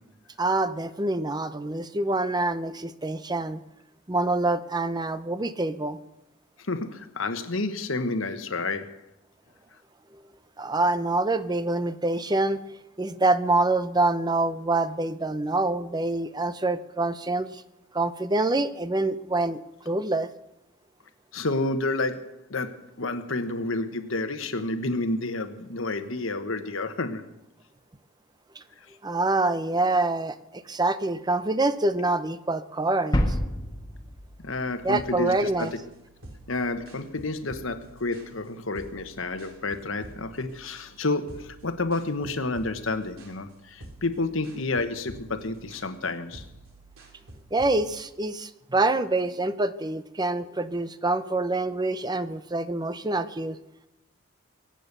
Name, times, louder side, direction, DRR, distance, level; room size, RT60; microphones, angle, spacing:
voice 1, 0.4-3.6 4.1-6.0 10.6-12.6 13.0-17.6 17.9-20.3 29.0-33.4 34.8-35.7 47.5-53.6, right 2 dB, 20° right, 12 dB, 0.7 m, -26 dB
voice 2, 6.6-9.0 21.3-27.3 34.4-35.7 36.5-46.5, left 2 dB, 65° left, 9 dB, 1.3 m, -30 dB
sound 1, 33.1-35.8, equal, 20° left, 1.4 m, -29 dB
sound 2, 34.7-47.8, right 1 dB, 70° right, 3.3 m, -49 dB
23.0 x 9.0 x 6.8 m, 0.89 s
head